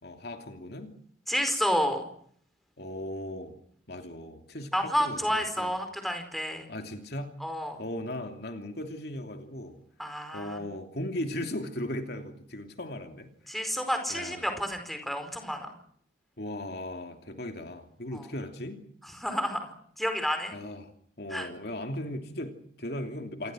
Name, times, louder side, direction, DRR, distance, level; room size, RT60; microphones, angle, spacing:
voice 1, 0.0-0.9 2.8-3.6 3.9-5.7 6.7-7.4 7.8-9.8 10.3-13.3 14.1-14.4 16.4-18.8 20.5-20.9 21.2-23.5, left 1 dB, 55° left, 5 dB, 2.9 m, -37 dB
voice 2, 1.3-2.0 4.7-6.7 7.4-7.8 10.0-10.6 13.5-15.7 18.1-18.3 19.0-20.5 21.3-21.5, equal, ahead, 6 dB, 4.9 m, -30 dB
28.0 x 24.5 x 6.4 m, 0.62 s
head